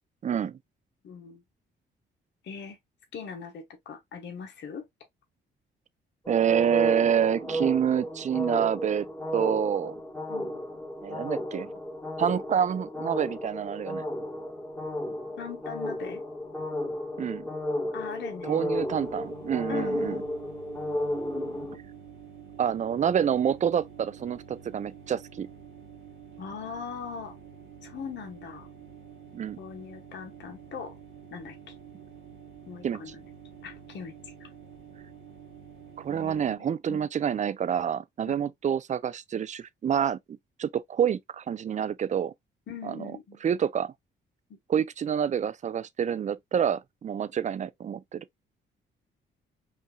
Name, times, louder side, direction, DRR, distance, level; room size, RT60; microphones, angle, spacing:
voice 1, 0.2-0.6 6.3-9.1 9.3-10.0 11.0-11.7 12.2-14.1 17.2-17.5 18.5-20.2 22.6-25.5 29.3-29.6 32.8-33.0 36.0-42.3 42.8-43.1 43.4-43.9 44.7-48.2, right 8 dB, 35° right, 0.4 m, -27 dB
voice 2, 1.0-1.4 2.4-2.8 3.1-4.9 10.3-10.6 15.4-16.2 17.9-18.6 19.7-20.4 26.4-27.3 27.8-28.7 29.6-31.0 31.3-31.7 32.7-33.2 33.6-34.5 36.1-37.1 38.3-38.4 42.7-43.4 44.5-44.6, left 6 dB, 65° left, 1.3 m, -40 dB
sound 1, 6.2-21.8, equal, 10° left, 1.5 m, -33 dB
sound 2, 18.7-36.6, right 8 dB, 80° right, 1.3 m, -48 dB
5.5 x 2.6 x 2.3 m
cardioid pair, 90°, 20 cm